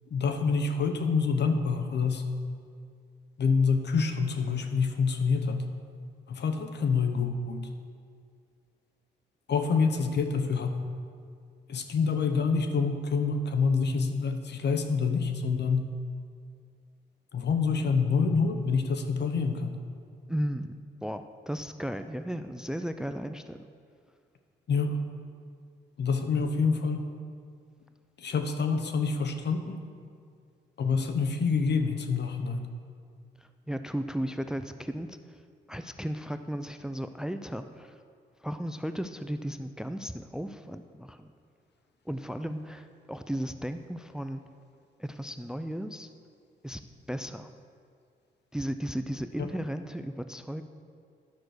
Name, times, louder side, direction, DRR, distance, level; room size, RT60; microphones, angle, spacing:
voice 1, 0.1-2.3 3.4-5.6 6.3-7.6 9.5-10.9 11.7-15.9 17.3-19.8 24.7-25.0 26.0-27.1 28.2-29.8 30.8-32.7, left 5 dB, 60° left, 7 dB, 1.0 m, -27 dB
voice 2, 20.3-23.6 33.4-35.4 35.7-38.0 38.4-41.3 42.1-44.4 45.0-46.1 46.6-46.8 47.1-47.5 48.5-50.6, equal, 5° right, 9 dB, 0.5 m, -35 dB
10.5 x 6.0 x 6.6 m, 2.2 s
cardioid pair, 60°, 20 cm